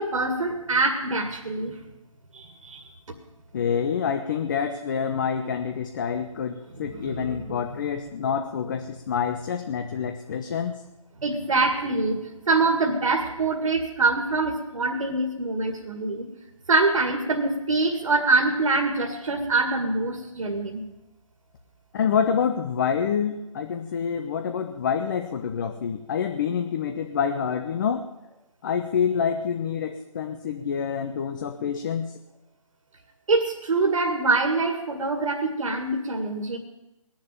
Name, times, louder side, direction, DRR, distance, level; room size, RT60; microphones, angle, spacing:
voice 1, 0.0-1.8 2.3-2.9 6.9-7.6 11.2-12.2 12.5-16.3 16.7-20.8 33.3-36.6, right 3 dB, 65° right, 3 dB, 2.2 m, -24 dB
voice 2, 3.5-10.8 21.9-28.0 28.6-32.1, left 7 dB, 35° left, 6 dB, 0.9 m, -27 dB
20.0 x 7.3 x 9.0 m, 0.98 s
hypercardioid pair, 160°, 18 cm